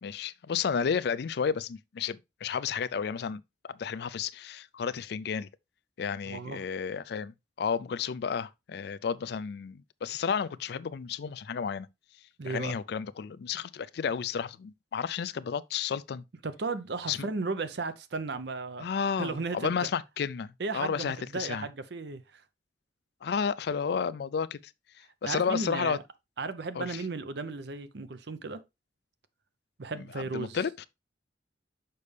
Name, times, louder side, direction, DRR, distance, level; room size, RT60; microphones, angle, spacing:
voice 1, 0.0-5.5 6.0-11.9 12.5-16.2 17.1-17.2 18.8-21.7 23.2-24.6 25.2-26.0 26.8-27.0 30.3-30.9, left 6 dB, 60° left, 0.4 m, -32 dB
voice 2, 6.3-6.6 12.4-12.8 16.4-18.9 19.2-19.9 20.6-22.4 25.2-26.0 26.4-28.6 29.8-30.6, right 3 dB, 65° right, 0.7 m, -35 dB
6.7 x 5.4 x 3.2 m
head